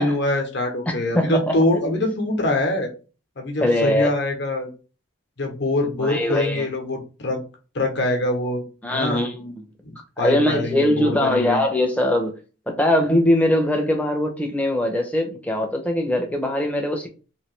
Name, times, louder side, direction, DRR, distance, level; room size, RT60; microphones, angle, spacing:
voice 1, 0.0-2.9 3.4-4.7 5.4-7.4 7.7-8.6 8.9-9.2 9.8-11.6, left 2 dB, 55° left, 0.9 m, -24 dB
voice 2, 0.9-1.5 3.6-4.1 6.0-6.6 8.8-9.6 10.2-12.3 12.7-17.1, left 1 dB, 5° left, 0.5 m, -21 dB
3.1 x 2.7 x 3.1 m
head